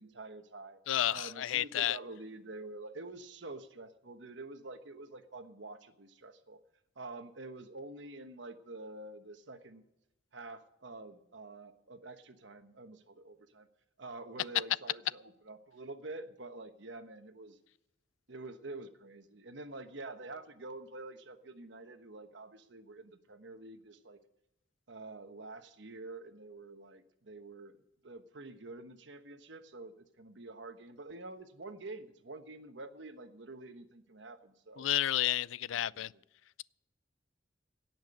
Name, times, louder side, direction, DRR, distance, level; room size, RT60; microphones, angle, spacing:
voice 1, 0.0-0.8 1.1-6.6 7.0-9.8 10.3-13.7 14.0-17.6 18.3-24.2 24.9-27.8 28.0-34.9 35.7-36.2, right 2 dB, 75° right, 1.2 m, -47 dB
voice 2, 0.9-2.0 34.8-36.1, left 12 dB, 90° left, 0.4 m, -31 dB
17.5 x 6.0 x 8.4 m
head